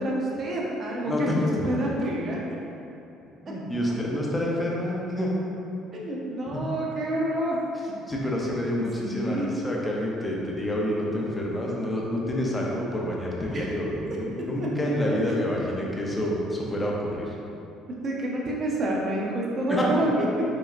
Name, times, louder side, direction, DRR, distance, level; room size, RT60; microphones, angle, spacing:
voice 1, 0.0-2.4 5.9-7.6 9.0-9.5 13.5-13.7 14.6-14.7 15.1-15.2 18.0-20.4, right 1 dB, 40° right, -3 dB, 0.7 m, -28 dB
voice 2, 1.0-1.7 3.5-5.3 6.5-6.6 8.1-17.3 19.7-19.9, left 1 dB, 10° left, -3 dB, 0.6 m, -28 dB
4.6 x 3.1 x 2.6 m, 2.8 s
cardioid pair, 120°, 0 cm